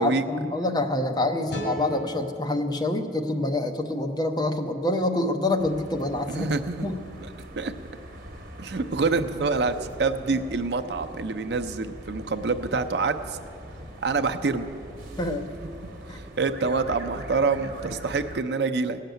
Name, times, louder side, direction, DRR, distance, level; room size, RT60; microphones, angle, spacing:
voice 1, 0.0-6.5 6.8-7.0 15.2-15.5 16.1-16.2, left 2 dB, 25° left, 5 dB, 0.7 m, -26 dB
sound 1, 1.5-4.7, equal, 80° left, 2.2 m, -39 dB
sound 2, 5.6-18.4, right 1 dB, 50° right, 1.3 m, -42 dB
voice 2, 6.3-6.9 7.2-7.3 7.6-7.7 8.6-13.4 14.0-14.7 16.1-19.0, right 4 dB, 70° right, 7 dB, 0.6 m, -26 dB
17.0 x 6.6 x 9.1 m, 2.6 s
head